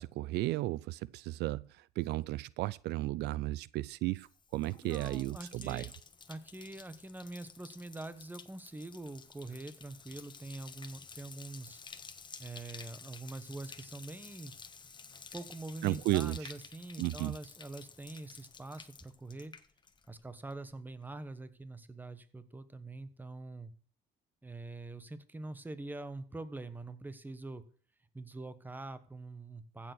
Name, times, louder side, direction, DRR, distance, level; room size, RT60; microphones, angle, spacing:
voice 1, 0.0-5.8 15.8-16.5 17.0-17.3, right 17 dB, 80° right, 0.5 m, -34 dB
Bathtub (filling or washing), 4.1-20.2 20.5-21.0, left 5 dB, 25° left, 1.2 m, -52 dB
voice 2, 4.8-5.9 6.3-11.8 12.4-14.5 15.3-19.5 20.1-23.7 24.4-27.6 28.1-29.9, right 2 dB, 10° right, 1.3 m, -44 dB
15.0 x 7.1 x 6.1 m
cardioid pair, 110°, 17 cm